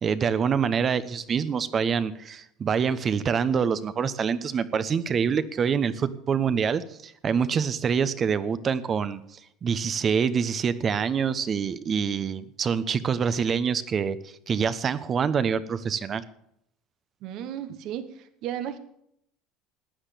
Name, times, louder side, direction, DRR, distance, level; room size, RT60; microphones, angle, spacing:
voice 1, 0.0-9.2 9.6-14.2 14.5-16.2, right 6 dB, 35° right, 14 dB, 1.1 m, -26 dB
voice 2, 17.2-18.8, right 10 dB, 60° right, 10 dB, 1.3 m, -34 dB
15.0 x 9.8 x 6.8 m, 0.73 s
supercardioid pair, 95°, 0 cm